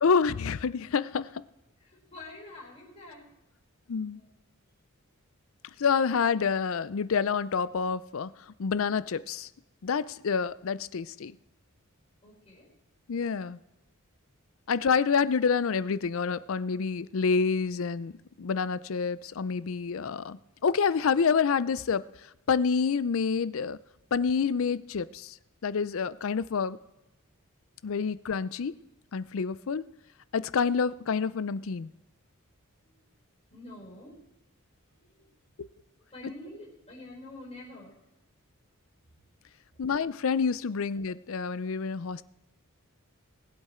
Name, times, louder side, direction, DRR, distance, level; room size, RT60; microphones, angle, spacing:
voice 1, 0.0-1.4 3.9-4.2 5.8-8.3 8.6-9.5 9.8-11.3 13.1-13.6 14.7-18.1 18.4-22.0 22.5-23.8 24.1-25.3 25.6-26.8 27.8-28.7 29.1-29.8 30.3-31.9 39.8-42.2, left 5 dB, 65° left, 0.5 m, -28 dB
voice 2, 1.8-3.2 4.1-4.2 12.2-12.7 28.0-28.1 32.9-33.0 33.5-34.2 35.0-35.3 36.1-37.9, left 2 dB, 30° left, 4.7 m, -47 dB
20.0 x 8.0 x 4.4 m
head